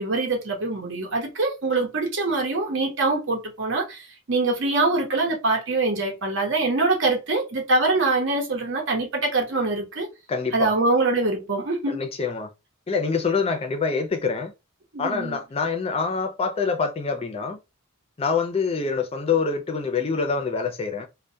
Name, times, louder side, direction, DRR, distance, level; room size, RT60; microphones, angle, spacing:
voice 1, 0.0-10.1 10.5-12.0 14.9-15.4, right 3 dB, 65° right, 0.9 m, -24 dB
voice 2, 10.3-10.7 11.9-12.5 12.9-14.5 15.0-17.6 18.2-21.1, left 5 dB, 30° left, 0.4 m, -25 dB
2.2 x 2.1 x 2.6 m
head